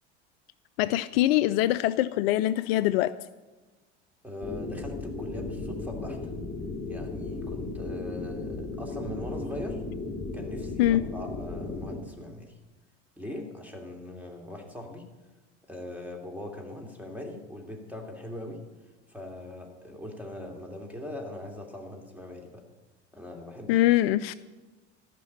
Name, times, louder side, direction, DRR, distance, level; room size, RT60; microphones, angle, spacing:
voice 1, 0.8-3.1 10.8-11.0 23.7-24.3, left 14 dB, 60° left, 15 dB, 0.5 m, -23 dB
voice 2, 4.2-6.2 6.9-9.8 10.3-12.5 13.2-15.1 15.7-18.6 19.1-22.6 23.1-23.9, left 1 dB, 5° right, 2 dB, 2.9 m, -40 dB
sound 1, 4.4-12.0, left 3 dB, 15° left, 2.4 m, -35 dB
13.5 x 6.1 x 9.9 m, 1.2 s
hypercardioid pair, 75°, 34 cm